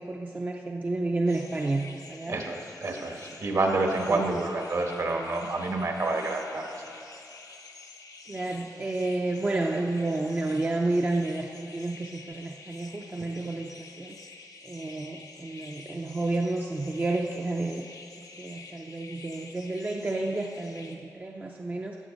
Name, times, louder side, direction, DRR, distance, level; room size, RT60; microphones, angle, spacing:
voice 1, 0.0-2.4 4.1-4.4 8.3-14.2 14.6-17.9 18.2-22.0, right 2 dB, 25° right, 1 dB, 0.5 m, -30 dB
sound 1, 1.3-21.0, left 4 dB, 80° left, 1.1 m, -48 dB
voice 2, 2.3-6.8 13.2-13.3, right 2 dB, 55° right, 2 dB, 1.4 m, -28 dB
14.5 x 7.1 x 5.2 m, 2.6 s
wide cardioid pair, 145°, 6 cm